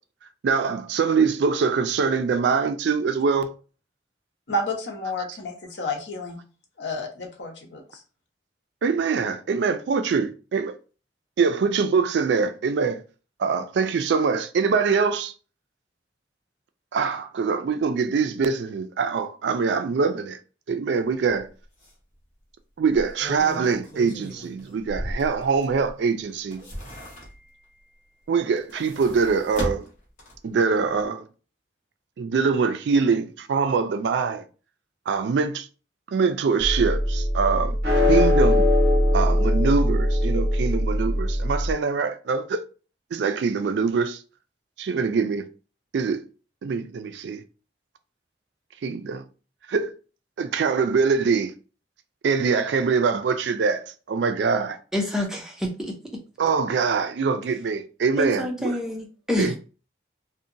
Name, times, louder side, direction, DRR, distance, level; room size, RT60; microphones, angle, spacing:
voice 1, 0.4-3.5 8.8-10.7 11.4-13.0 13.4-15.3 16.9-20.4 20.7-21.5 22.8-26.6 28.3-29.9 30.4-31.3 32.2-34.4 35.1-35.7 36.1-37.8 38.1-38.7 39.1-42.6 43.1-44.2 44.8-45.5 45.9-46.2 46.6-47.4 48.8-49.2 49.7-49.9 50.4-51.5 52.2-54.8 56.4-58.8 59.4-59.6, right 5 dB, 70° right, 0.3 m, -23 dB
voice 2, 4.5-6.4 6.8-8.0, left 1 dB, 75° left, 0.7 m, -30 dB
sound 1, 21.3-21.4 21.8-21.9 22.8-25.9 26.3-27.6 28.5-30.6 30.9-31.0, equal, 40° left, 0.8 m, -36 dB
sound 2, 36.6-41.7, left 1 dB, 55° right, 0.9 m, -21 dB
voice 3, 54.9-56.2 58.2-59.6, left 1 dB, 5° right, 0.4 m, -27 dB
2.7 x 2.1 x 2.5 m
head